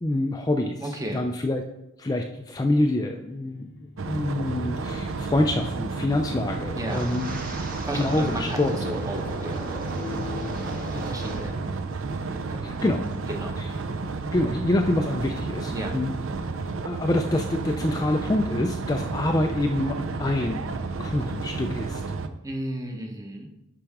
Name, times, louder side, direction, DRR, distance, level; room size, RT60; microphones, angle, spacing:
voice 1, 0.0-1.6 2.0-3.7 4.1-7.4 7.9-8.8 12.6-13.1 13.6-13.7 14.3-16.1 16.8-20.6 21.0-22.0, left 1 dB, 15° left, 3 dB, 0.4 m, -26 dB
voice 2, 0.8-1.2 6.7-7.0 7.8-10.3 10.9-11.6 12.5-13.0 13.3-13.8 15.7-15.9 22.4-23.5, right 1 dB, 15° right, 3 dB, 0.9 m, -34 dB
Guitar, 3.2-6.7 8.2-8.6 8.9-11.8, left 5 dB, 55° left, 0.8 m, -44 dB
sound 1, 4.0-22.3, right 3 dB, 65° right, 0.5 m, -32 dB
Wind, 6.8-11.7 11.9-12.4 12.8-13.1, right 1 dB, 40° right, 1.4 m, -37 dB
9.9 x 5.8 x 3.6 m, 0.88 s
head